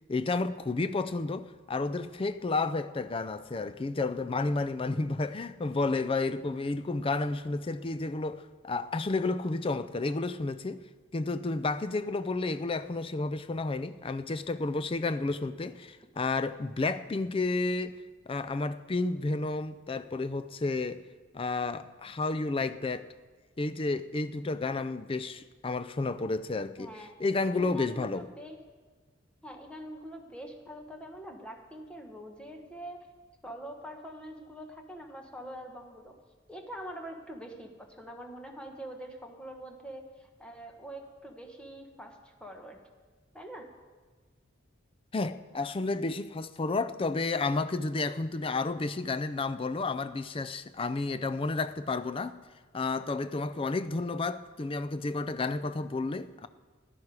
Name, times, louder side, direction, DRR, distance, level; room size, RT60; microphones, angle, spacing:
voice 1, 0.1-10.8 11.1-18.0 18.3-21.0 21.3-23.1 23.6-26.9 27.2-28.3 45.1-52.4 52.7-56.5, left 3 dB, 25° left, 0.4 m, -31 dB
voice 2, 26.8-27.2 27.5-28.6 29.4-33.1 33.4-36.2 36.5-42.8 43.3-43.7, right 1 dB, 5° left, 1.2 m, -44 dB
15.5 x 11.0 x 4.8 m
head